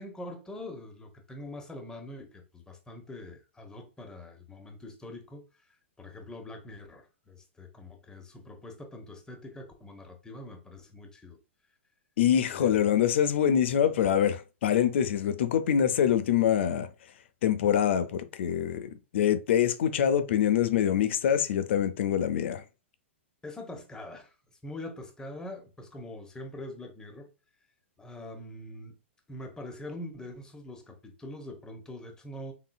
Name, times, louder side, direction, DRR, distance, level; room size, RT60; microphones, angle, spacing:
voice 1, 0.0-11.4 12.5-12.8 23.4-24.3 24.6-27.3 28.0-29.0 29.3-32.5, left 1 dB, 10° left, 1.0 m, -44 dB
voice 2, 12.2-16.9 17.4-22.6, left 9 dB, 65° left, 0.6 m, -25 dB
3.9 x 3.7 x 2.3 m
hypercardioid pair, 115°, 7 cm